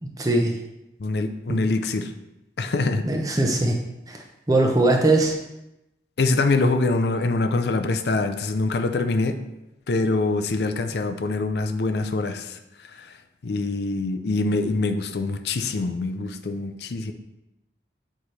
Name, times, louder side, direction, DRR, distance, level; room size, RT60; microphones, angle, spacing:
voice 1, 0.0-0.5 1.5-1.6 3.0-3.8 4.1-5.3, right 2 dB, 20° right, 2 dB, 0.7 m, -21 dB
voice 2, 1.0-2.1 2.6-3.0 6.2-9.4 9.9-13.1 13.4-17.1, left 3 dB, 70° left, 8 dB, 0.5 m, -24 dB
7.8 x 4.3 x 3.2 m, 0.92 s
head